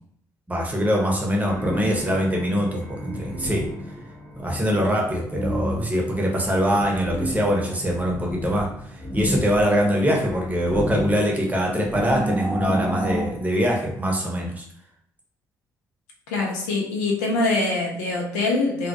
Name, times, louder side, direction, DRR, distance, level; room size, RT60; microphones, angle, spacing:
voice 1, 0.5-3.7 4.4-8.7 9.1-14.6, equal, 15° right, -1 dB, 0.8 m, -23 dB
sound 1, 1.4-13.3, equal, 40° left, 1.0 m, -31 dB
voice 2, 16.3-18.9, left 2 dB, 75° left, -1 dB, 0.5 m, -24 dB
2.3 x 2.1 x 2.7 m, 0.67 s
figure-of-eight pair, 45°, 9 cm